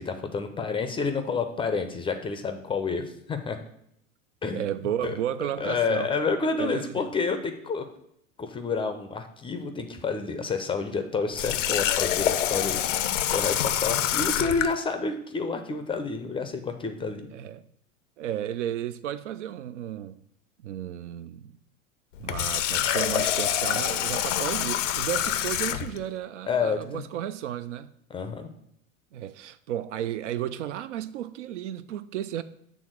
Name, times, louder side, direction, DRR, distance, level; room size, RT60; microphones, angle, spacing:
voice 1, 0.0-3.6 4.4-4.6 5.0-5.2 5.6-7.8 8.4-12.9 13.3-17.3 26.5-27.0 28.1-28.5, left 4 dB, 15° left, 0.5 m, -29 dB
voice 2, 4.5-6.1 6.6-6.9 17.3-17.6 18.2-20.2 20.6-21.5 22.2-27.9 29.1-32.4, right 11 dB, 60° right, 0.5 m, -33 dB
Water tap faucet, 11.3-14.7 22.1-26.0, left 11 dB, 65° left, 0.6 m, -26 dB
6.9 x 3.6 x 6.1 m
figure-of-eight pair, 80°, 40 cm